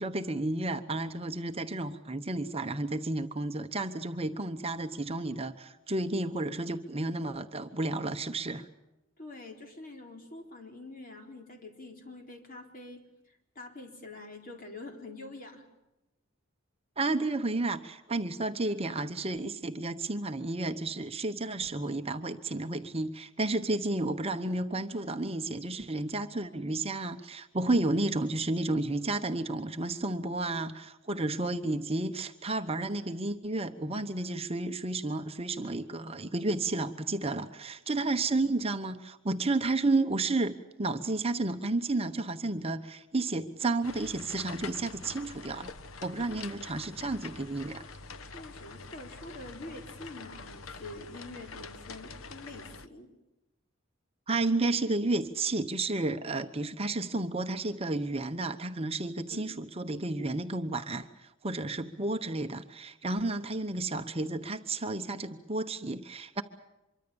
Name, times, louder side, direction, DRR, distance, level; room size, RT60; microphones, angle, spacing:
voice 1, 0.0-8.7 17.0-45.7 46.0-47.8 54.3-66.4, right 2 dB, 30° right, 7 dB, 1.0 m, -32 dB
voice 2, 9.2-13.0 13.3-15.6 46.3-46.4 48.2-53.1 59.3-59.6, left 2 dB, 45° left, 3 dB, 3.9 m, -46 dB
sound 1, 43.8-52.9, left 4 dB, 85° left, 1.0 m, -45 dB
25.0 x 23.5 x 7.1 m, 0.95 s
head